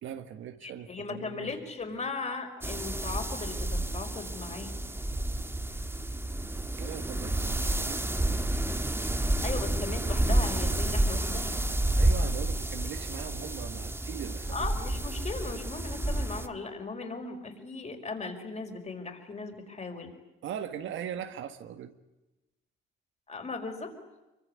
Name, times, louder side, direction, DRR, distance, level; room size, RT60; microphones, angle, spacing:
voice 1, 0.0-1.5 6.8-8.2 11.9-14.7 20.4-21.9, right 9 dB, 80° right, 1.8 m, -40 dB
voice 2, 0.6-4.8 9.4-11.6 14.5-20.1 23.3-23.9, left 4 dB, 35° left, 5.3 m, -37 dB
sound 1, 2.6-16.5, right 1 dB, 10° right, 1.6 m, -30 dB
24.5 x 23.5 x 9.8 m
cardioid pair, 90°, 20 cm